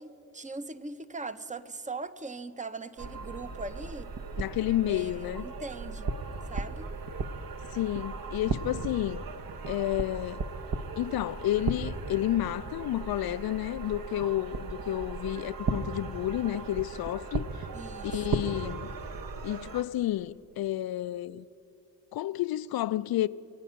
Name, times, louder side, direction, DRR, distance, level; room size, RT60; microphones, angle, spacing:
voice 1, 0.0-4.1 4.9-6.1 6.5-6.9 17.7-18.1 18.4-18.8, right 3 dB, 15° right, 0.8 m, -40 dB
sound 1, 3.0-19.8, right 4 dB, 50° right, 1.1 m, -36 dB
voice 2, 4.4-5.4 7.7-9.2 9.7-10.4 11.0-17.5 18.0-18.9 19.4-21.5 22.1-23.3, left 14 dB, 55° left, 0.5 m, -30 dB
25.5 x 9.0 x 5.8 m
supercardioid pair, 60°, 44 cm